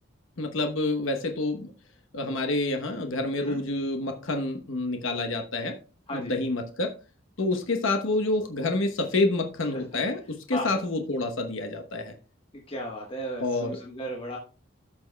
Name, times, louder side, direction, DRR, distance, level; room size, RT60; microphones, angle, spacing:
voice 1, 0.4-1.7 2.1-5.7 6.1-6.9 7.4-12.1 13.4-13.8, left 2 dB, 70° left, 5 dB, 1.0 m, -28 dB
voice 2, 12.7-14.4, equal, 25° left, -1 dB, 1.2 m, -35 dB
14.0 x 6.0 x 2.2 m, 0.35 s
head